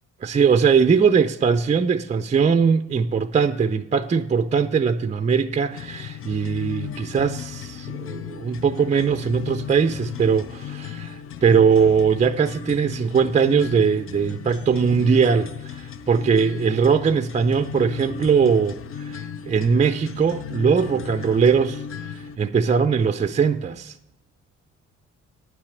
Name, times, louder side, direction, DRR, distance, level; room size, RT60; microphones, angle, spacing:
voice 1, 0.2-24.0, right 6 dB, 25° right, 0.4 m, -20 dB
sound 1, 5.7-22.4, left 9 dB, 45° left, 0.6 m, -36 dB
9.3 x 5.8 x 8.0 m
cardioid pair, 90°, 30 cm